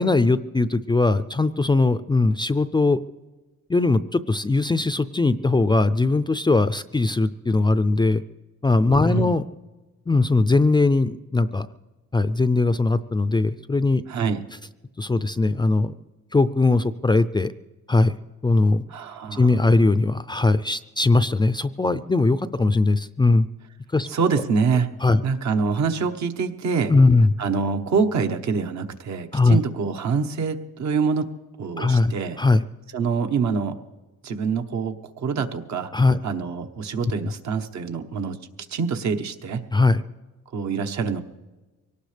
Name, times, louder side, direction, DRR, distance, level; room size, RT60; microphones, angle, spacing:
voice 1, 0.0-3.0 3.7-8.2 8.6-9.4 10.1-11.7 12.1-14.0 15.0-15.9 16.3-17.5 17.9-18.2 18.4-18.8 19.3-23.5 23.9-24.1 25.0-25.2 26.9-27.3 29.3-29.6 31.8-32.6 35.9-36.2 39.7-40.0, left 3 dB, 15° left, 13 dB, 0.4 m, -20 dB
voice 2, 14.1-14.4 18.9-19.6 24.1-24.9 25.2-26.9 27.4-31.3 31.6-32.4 32.9-33.8 34.2-35.9 36.2-38.4 38.7-39.6 40.5-41.2, right 5 dB, 65° right, 6 dB, 1.2 m, -25 dB
23.5 x 18.0 x 3.4 m, 1.2 s
cardioid pair, 90°, 30 cm